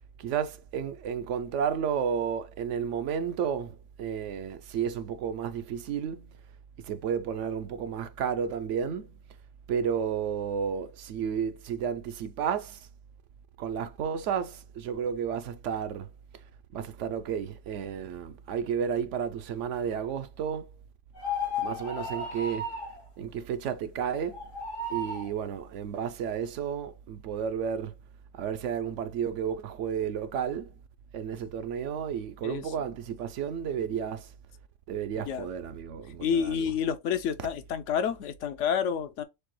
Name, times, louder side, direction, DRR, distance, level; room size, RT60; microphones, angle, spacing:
voice 1, 0.2-6.4 6.8-9.2 9.7-12.9 13.6-16.1 16.7-20.7 21.6-22.7 23.2-24.5 24.9-27.9 28.3-30.7 31.1-34.3 34.9-36.6 37.4-37.5, right 7 dB, 75° right, 0.9 m, -32 dB
sound 1, 21.1-23.0 24.3-25.3, left 3 dB, 90° left, 2.7 m, -34 dB
voice 2, 36.2-39.2, left 8 dB, 75° left, 0.9 m, -29 dB
6.6 x 2.3 x 3.0 m
omnidirectional pair, 1.3 m